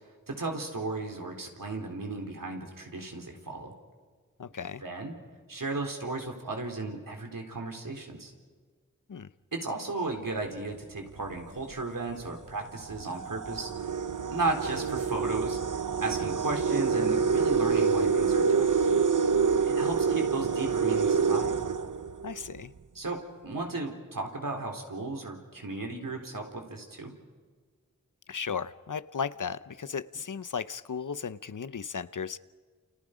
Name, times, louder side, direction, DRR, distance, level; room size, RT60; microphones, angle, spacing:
voice 1, 0.3-3.7 4.8-5.1 5.5-8.3 9.6-13.7 14.3-18.8 19.7-21.5 23.0-23.2 23.4-27.1, right 3 dB, 85° right, 2 dB, 3.8 m, -35 dB
voice 2, 4.4-4.8 9.1-9.3 22.2-22.7 28.3-32.4, left 6 dB, 70° left, 14 dB, 0.8 m, -35 dB
sound 1, 11.2-11.4 12.3-12.4 12.8-22.6, right 5 dB, 70° right, 1.0 m, -27 dB
29.5 x 29.0 x 5.1 m, 1.5 s
wide cardioid pair, 45°, 32 cm